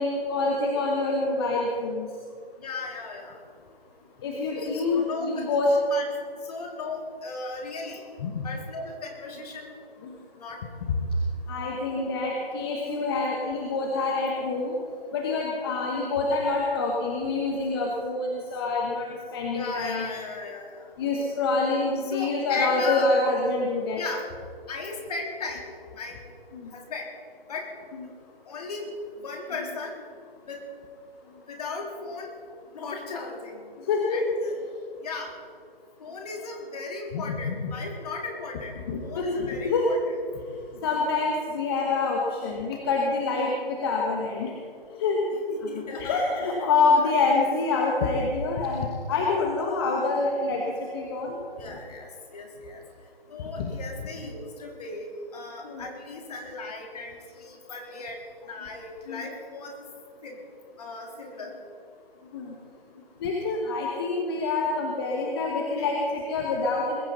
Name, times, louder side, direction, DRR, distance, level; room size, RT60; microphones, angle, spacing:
voice 1, 0.0-2.1 4.2-5.7 8.2-8.4 10.0-10.1 11.5-14.7 15.1-20.1 21.0-24.0 26.6-26.7 33.9-34.2 37.1-37.5 38.9-39.9 40.8-44.5 45.0-45.2 45.7-50.6 50.9-51.4 53.6-53.7 55.6-55.8 59.1-59.2 62.3-62.6 63.2-67.0, left 3 dB, 25° left, 0 dB, 1.5 m, -26 dB
voice 2, 2.6-3.4 4.6-5.6 5.9-6.2 6.4-8.0 8.4-9.7 10.4-10.6 19.5-20.9 22.0-23.1 23.9-24.3 24.7-25.6 25.9-26.2 26.7-27.1 27.5-27.7 28.5-28.9 29.2-29.9 30.5-30.7 31.5-32.3 32.7-33.7 34.1-34.6 35.0-35.4 36.0-40.0 45.5-46.7 47.0-47.1 51.6-52.8 53.3-59.9 60.2-60.4 60.8-61.6, left 3 dB, 40° left, 1 dB, 3.6 m, -36 dB
21.0 x 15.0 x 4.1 m, 2.2 s
figure-of-eight pair, 155°, 29 cm